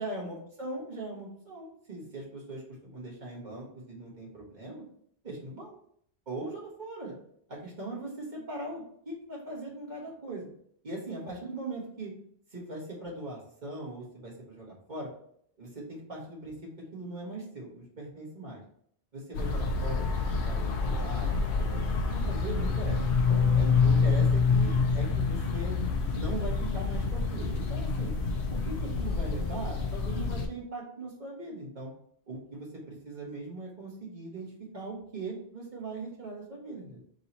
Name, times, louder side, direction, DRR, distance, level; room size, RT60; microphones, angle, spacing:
voice 1, 0.0-4.8 5.2-5.8 6.3-7.1 7.5-10.5 10.8-12.1 12.5-15.1 15.6-18.6 19.1-21.3 21.7-23.0 23.5-25.7 26.1-28.1 28.5-31.9 32.3-37.0, right 2 dB, 45° right, -4 dB, 1.5 m, -40 dB
sound 1, 19.3-30.5, left 4 dB, 90° left, 0.9 m, -27 dB
3.9 x 2.8 x 4.3 m, 0.66 s
omnidirectional pair, 1.1 m